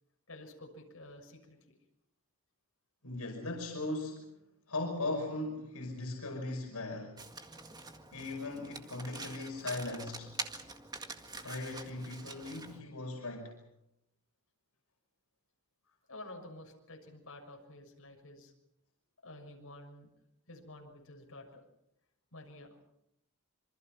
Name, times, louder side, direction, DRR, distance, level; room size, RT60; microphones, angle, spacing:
voice 1, 0.3-1.7 16.1-18.5 19.2-20.1 20.5-21.6 22.3-22.8, left 1 dB, 70° left, 1 dB, 6.7 m, -50 dB
voice 2, 3.0-4.4 4.7-7.2 8.1-10.3 11.4-13.6, left 2 dB, 85° left, 0 dB, 5.5 m, -38 dB
Domestic sounds home sounds, 7.2-12.8, right 3 dB, 20° right, 1.9 m, -45 dB
27.0 x 25.0 x 5.9 m, 0.81 s
head